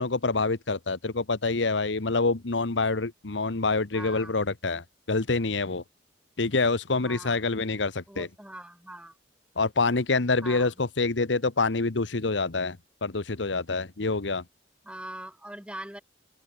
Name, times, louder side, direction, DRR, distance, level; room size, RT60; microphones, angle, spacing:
voice 1, 0.0-5.8 6.4-8.3 9.6-14.4, left 3 dB, 90° left, 1.2 m, -26 dB
voice 2, 3.9-4.3 7.0-7.4 8.1-9.2 10.4-10.7 14.8-16.0, right 1 dB, 5° right, 4.4 m, -42 dB
open air
head